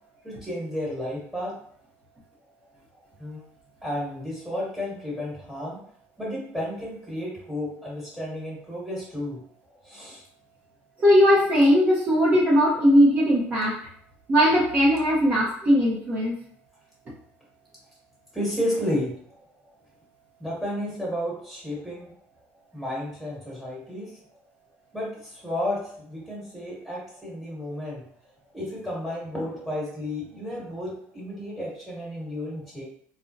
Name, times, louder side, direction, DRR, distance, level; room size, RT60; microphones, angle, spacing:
voice 1, 0.2-1.6 3.2-3.4 3.8-5.8 6.2-9.4 9.8-10.2 18.3-19.2 20.4-22.1 22.7-24.1 24.9-28.0 28.5-32.8, left 1 dB, ahead, -6 dB, 1.3 m, -32 dB
voice 2, 11.0-13.8 14.3-16.3, equal, 25° right, -6 dB, 0.6 m, -19 dB
3.6 x 2.0 x 2.5 m, 0.62 s
cardioid pair, 145°, 5 cm